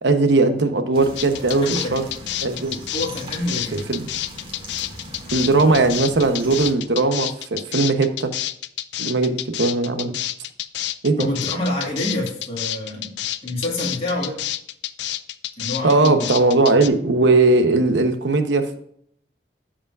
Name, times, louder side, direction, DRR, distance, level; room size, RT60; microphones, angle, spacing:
voice 1, 0.0-2.0 2.4-2.8 3.5-4.1 5.3-8.3 9.0-10.2 11.0-11.3 15.8-18.8, right 3 dB, 85° right, 8 dB, 0.9 m, -19 dB
sound 1, 0.9-6.7, equal, 30° right, 2.0 m, -39 dB
sound 2, 1.2-16.9, left 13 dB, 75° left, 0.4 m, -29 dB
voice 2, 1.5-1.9 2.9-3.8 11.2-13.1 13.4-14.4 15.6-16.3, left 1 dB, 35° left, -2 dB, 2.3 m, -27 dB
13.5 x 5.0 x 2.4 m, 0.67 s
head